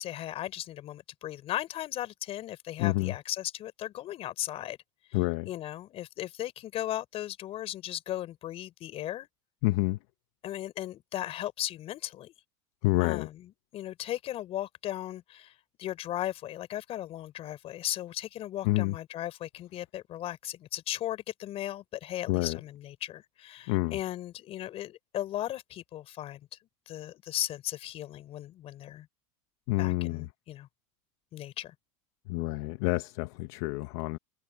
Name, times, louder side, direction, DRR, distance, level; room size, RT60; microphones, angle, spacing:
voice 1, 0.0-4.8 5.1-5.2 5.4-9.3 10.4-12.3 13.0-26.4 26.9-29.1 29.8-30.7 31.3-31.7, left 13 dB, 40° left, 4.8 m, -37 dB
voice 2, 2.8-3.1 5.1-5.5 9.6-10.0 12.8-13.3 18.6-18.9 22.3-22.6 23.7-24.0 29.7-30.3 32.3-34.2, left 21 dB, 60° left, 1.0 m, -28 dB
supercardioid pair, 125°, 15 cm